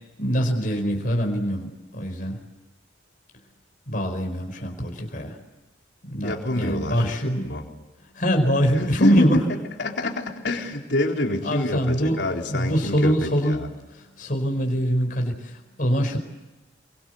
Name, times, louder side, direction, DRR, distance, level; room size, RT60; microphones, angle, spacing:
voice 1, 0.2-2.4 3.9-5.4 6.0-7.5 8.1-9.4 10.0-10.1 11.4-12.2 12.5-13.6 13.9-16.2, equal, 45° left, 3 dB, 4.9 m, -24 dB
voice 2, 6.2-7.1 7.4-7.6 8.7-13.7, left 1 dB, 65° left, 1 dB, 4.1 m, -27 dB
28.5 x 24.0 x 8.1 m, 1.1 s
head